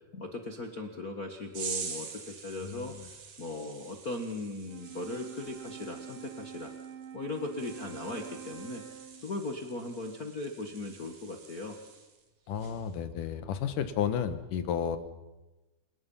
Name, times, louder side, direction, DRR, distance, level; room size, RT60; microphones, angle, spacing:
voice 1, 0.1-2.9 3.4-6.7 7.1-8.8 9.2-11.8, left 2 dB, 40° left, 3 dB, 1.4 m, -38 dB
sound 1, 1.5-12.2 12.6-12.9, right 6 dB, 65° right, 3.7 m, -45 dB
voice 2, 2.6-3.1 12.5-15.0, left 8 dB, 80° left, 10 dB, 2.8 m, -32 dB
Wind instrument woodwind instrument, 4.6-9.4, right 8 dB, 85° right, 3.0 m, -46 dB
28.5 x 19.0 x 5.5 m, 1.1 s
omnidirectional pair, 3.7 m